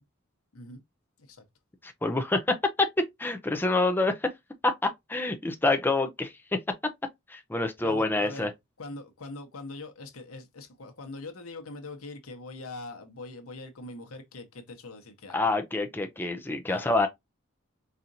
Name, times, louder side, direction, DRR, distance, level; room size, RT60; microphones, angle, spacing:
voice 1, 1.8-4.3 4.6-6.3 7.3-8.5 15.3-17.1, left 2 dB, 10° left, 0.4 m, -27 dB
voice 2, 7.8-8.5 8.8-15.5 16.7-17.1, left 2 dB, 85° left, 0.9 m, -42 dB
4.2 x 2.5 x 2.6 m
head